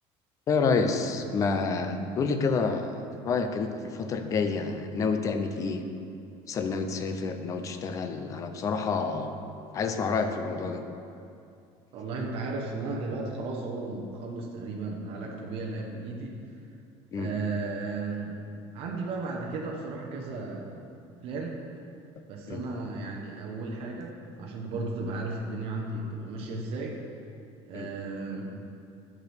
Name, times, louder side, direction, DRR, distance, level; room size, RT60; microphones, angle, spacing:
voice 1, 0.5-2.9 3.2-5.8 6.5-9.4 9.7-10.8 17.1-17.3 22.5-22.6 27.7-27.9, left 4 dB, 25° left, 7 dB, 0.4 m, -28 dB
voice 2, 11.9-16.4 17.1-18.4 18.7-20.9 21.2-21.6 22.3-27.0 27.7-28.5, right 3 dB, 45° right, -1 dB, 0.9 m, -34 dB
10.5 x 6.0 x 3.4 m, 2.6 s
cardioid pair, 180°, 13 cm